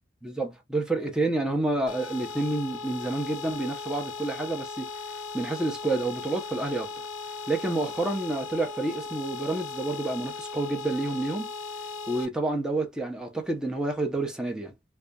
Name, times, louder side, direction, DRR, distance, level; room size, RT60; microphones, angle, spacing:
voice 1, 0.2-4.9 5.3-6.9 7.5-11.5 12.1-14.7, right 2 dB, 5° right, 0.5 m, -29 dB
sound 1, 1.9-12.3, left 4 dB, 70° left, 0.5 m, -38 dB
2.4 x 2.2 x 2.6 m
head